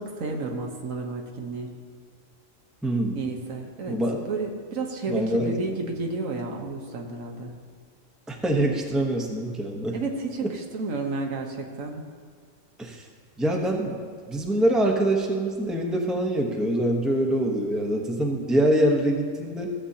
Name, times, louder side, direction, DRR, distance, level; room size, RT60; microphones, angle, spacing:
voice 1, 0.0-1.7 3.1-4.0 4.3-7.5 9.9-12.0, right 3 dB, 80° right, 2 dB, 1.4 m, -31 dB
voice 2, 2.8-3.2 3.9-4.3 5.1-5.8 8.3-10.0 10.4-10.5 12.8-13.0 13.4-14.0 14.3-19.7, right 1 dB, ahead, 1 dB, 0.8 m, -24 dB
15.5 x 7.9 x 2.8 m, 2.1 s
omnidirectional pair, 1.4 m